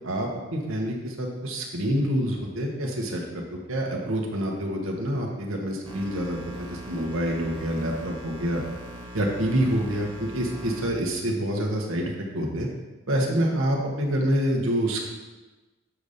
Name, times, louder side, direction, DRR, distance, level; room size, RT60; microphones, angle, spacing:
voice 1, 0.0-3.2 3.5-8.6 9.1-12.7 13.1-15.0, equal, 70° right, 0 dB, 1.2 m, -27 dB
sound 1, 5.8-10.9, equal, 25° right, 0.8 m, -41 dB
7.1 x 4.1 x 5.1 m, 1.2 s
head